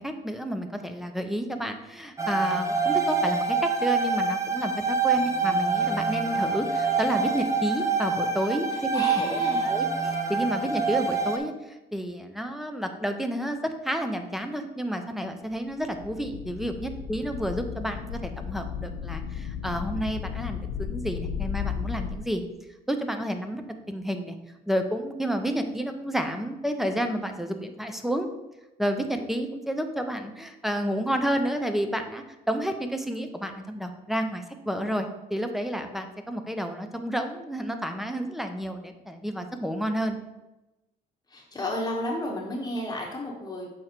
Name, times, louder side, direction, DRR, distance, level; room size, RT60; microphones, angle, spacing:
voice 1, 0.0-22.4 22.9-23.6 23.9-24.3 24.7-28.3 28.8-40.2, equal, ahead, 6 dB, 0.7 m, -30 dB
sound 1, 2.2-11.4, right 4 dB, 15° right, 1.0 m, -26 dB
voice 2, 8.7-9.8 41.3-43.7, left 1 dB, 20° left, -2 dB, 1.1 m, -32 dB
sound 2, 15.5-15.6 15.8-22.2, left 7 dB, 80° left, 0.6 m, -34 dB
6.5 x 4.7 x 4.4 m, 0.98 s
cardioid pair, 110°, 17 cm